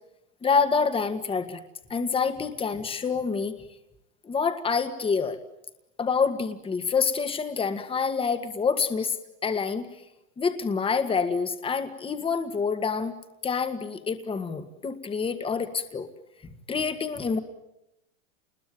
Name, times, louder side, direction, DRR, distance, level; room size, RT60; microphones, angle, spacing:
voice 1, 0.4-1.6 1.9-3.5 4.2-5.4 6.0-9.2 9.4-9.9 10.4-13.1 13.4-16.1 16.7-17.4, left 5 dB, 15° left, 9 dB, 1.9 m, -27 dB
28.5 x 21.5 x 9.4 m, 0.89 s
supercardioid pair, 135°, 37 cm